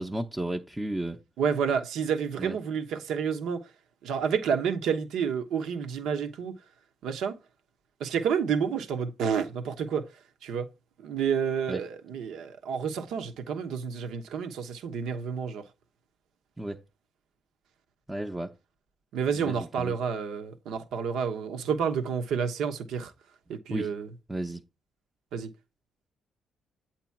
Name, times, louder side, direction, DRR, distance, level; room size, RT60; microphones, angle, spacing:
voice 1, 0.0-1.2 2.4-2.6 11.7-11.8 16.6-16.8 18.1-18.5 19.4-20.0 23.7-23.9 24.3-24.6, right 1 dB, 10° right, 0.6 m, -33 dB
voice 2, 1.4-3.6 4.0-6.5 7.0-7.4 8.0-10.1 10.4-10.7 11.0-15.6 19.1-23.1 23.5-24.1 25.3-25.5, right 7 dB, 80° right, 1.0 m, -29 dB
8.3 x 3.0 x 5.8 m
cardioid pair, 90°, 0 cm